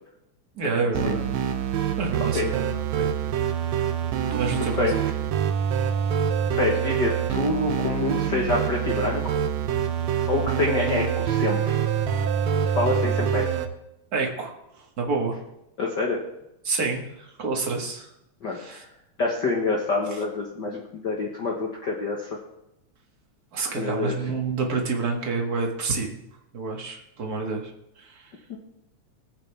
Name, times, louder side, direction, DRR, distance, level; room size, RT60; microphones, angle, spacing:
voice 1, 0.6-1.3 2.0-3.1 4.3-4.9 14.1-14.5 14.8-15.4 16.6-18.1 18.5-18.8 20.1-20.2 23.5-26.2 26.5-27.7 28.0-28.3, right 4 dB, 35° right, 1 dB, 1.9 m, -28 dB
sound 1, 0.9-13.7, right 8 dB, 70° right, 2.0 m, -25 dB
voice 2, 6.5-9.3 10.3-11.8 12.6-13.5 15.8-16.2 18.4-18.9 19.2-22.4 23.8-24.1 28.5-28.6, left 3 dB, 45° left, -1 dB, 1.7 m, -26 dB
20.5 x 8.6 x 3.5 m, 0.86 s
omnidirectional pair, 3.4 m